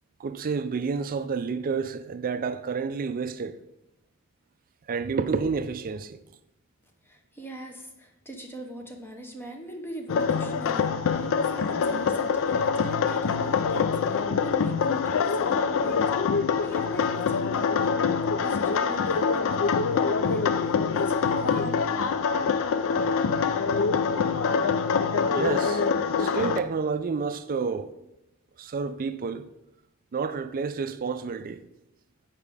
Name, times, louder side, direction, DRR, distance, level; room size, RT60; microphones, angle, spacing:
voice 1, 0.2-3.6 4.9-6.2 25.3-25.8 26.2-27.9 28.6-29.4 30.1-31.6, right 5 dB, 40° right, 0.4 m, -29 dB
voice 2, 7.0-17.9 18.4-22.3 22.9-23.0, right 1 dB, 10° left, 0.8 m, -41 dB
sound 1, 10.1-26.6, left 5 dB, 60° left, 0.4 m, -25 dB
8.4 x 4.8 x 3.5 m
head